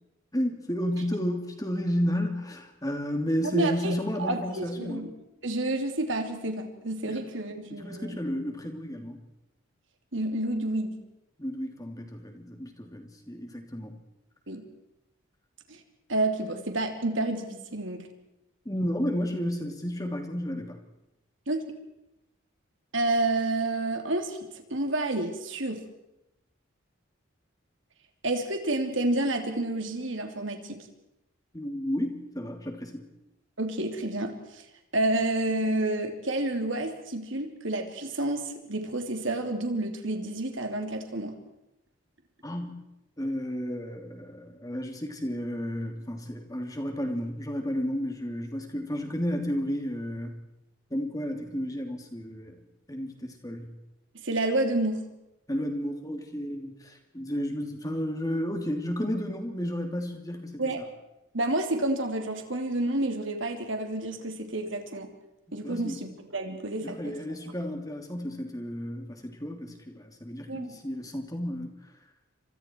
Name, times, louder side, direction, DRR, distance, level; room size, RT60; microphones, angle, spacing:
voice 1, 0.3-5.1 7.1-7.2 7.7-9.2 11.4-14.0 18.6-20.8 31.5-33.1 42.4-42.8 43.2-50.4 50.9-52.6 52.9-53.7 55.5-60.6 65.6-66.0 66.8-71.7, equal, 15° left, 4 dB, 2.9 m, -32 dB
voice 2, 3.4-5.1 5.4-8.2 10.1-11.0 14.5-14.7 15.7-15.8 16.1-18.1 21.5-21.6 22.9-24.4 24.7-25.9 28.2-30.8 33.6-34.6 34.9-41.4 54.1-55.1 60.6-60.8 61.3-65.1 65.5-67.1 70.5-70.8, right 2 dB, 65° right, 5 dB, 3.1 m, -29 dB
29.0 x 25.5 x 4.6 m, 0.90 s
head